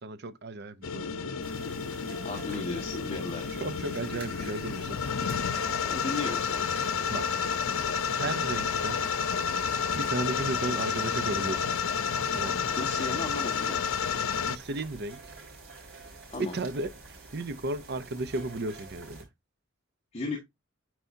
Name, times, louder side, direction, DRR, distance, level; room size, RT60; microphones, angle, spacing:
voice 1, 0.0-1.4 3.6-5.0 7.1-7.3 8.1-9.0 9.4-9.7 10.0-11.7 12.3-12.7 14.5-15.2 16.4-16.9 17.3-19.3, right 2 dB, 55° right, 0.7 m, -34 dB
sound 1, 0.8-14.6, left 6 dB, 90° left, 0.5 m, -30 dB
sound 2, 1.4-19.2, right 3 dB, 75° right, 4.4 m, -48 dB
voice 2, 2.2-3.4 5.8-6.7 12.8-14.0 16.3-16.6 20.1-20.4, left 3 dB, 30° left, 1.6 m, -35 dB
9.2 x 4.8 x 2.7 m
head